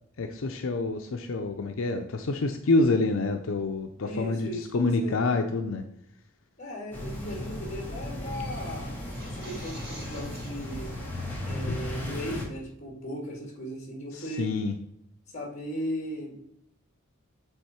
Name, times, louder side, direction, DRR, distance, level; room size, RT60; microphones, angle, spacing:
voice 1, 0.2-5.9 11.7-11.8 14.4-14.7, left 3 dB, 80° left, 5 dB, 0.6 m, -27 dB
voice 2, 4.0-5.2 6.6-8.9 9.2-10.9 11.5-14.5 15.3-16.4, equal, 35° left, 0 dB, 2.1 m, -37 dB
sound 1, 6.9-12.4, left 1 dB, 10° left, 1.5 m, -36 dB
sound 2, 9.0-10.8, right 1 dB, 50° right, 2.3 m, -46 dB
7.9 x 3.5 x 4.3 m, 0.76 s
head